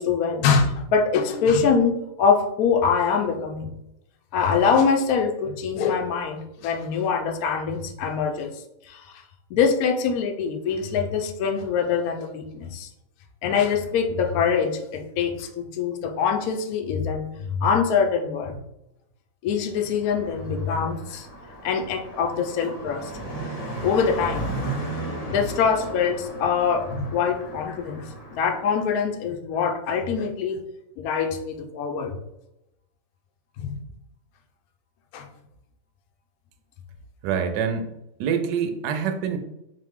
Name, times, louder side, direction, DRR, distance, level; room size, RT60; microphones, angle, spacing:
voice 1, 0.0-3.7 4.3-8.5 8.9-9.2 9.5-12.9 13.4-18.6 19.4-21.3 21.6-23.1 23.8-24.5 25.0-30.6 31.0-32.1 33.6-33.8 35.1-35.3, left 6 dB, 70° left, 4 dB, 0.9 m, -24 dB
Car passing by, 20.0-28.6, right 2 dB, 45° left, 0.5 m, -35 dB
voice 2, 37.2-37.9 38.2-39.4, right 7 dB, 75° right, 6 dB, 1.1 m, -25 dB
3.6 x 3.2 x 3.5 m, 0.87 s
omnidirectional pair, 2.0 m